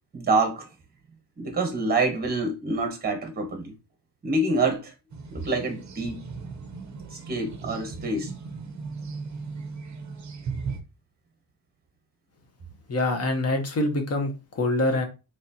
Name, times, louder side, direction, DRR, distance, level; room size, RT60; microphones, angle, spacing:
voice 1, 0.1-0.7 1.4-3.7 4.2-4.9 5.3-6.2 7.1-8.3, right 2 dB, 20° right, 1.2 m, -26 dB
sound 1, 5.1-10.8, right 4 dB, 35° right, 0.7 m, -37 dB
voice 2, 12.9-15.0, left 2 dB, 30° left, 0.9 m, -25 dB
4.1 x 3.1 x 2.8 m
cardioid pair, 135°, 48 cm